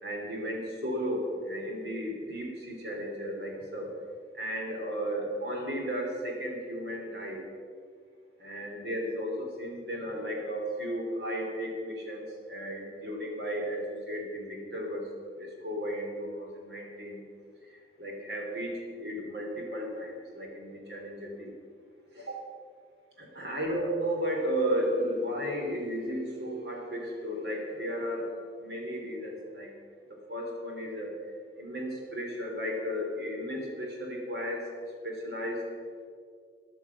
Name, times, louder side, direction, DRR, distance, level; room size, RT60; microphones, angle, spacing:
voice 1, 0.0-3.9 4.3-7.4 8.4-15.1 15.3-17.2 17.7-21.5 22.1-22.4 23.2-28.3 28.6-29.7 30.3-31.1 31.6-34.7 35.0-35.7, equal, 65° right, 0 dB, 3.4 m, -34 dB
14.0 x 10.5 x 5.9 m, 2.2 s
head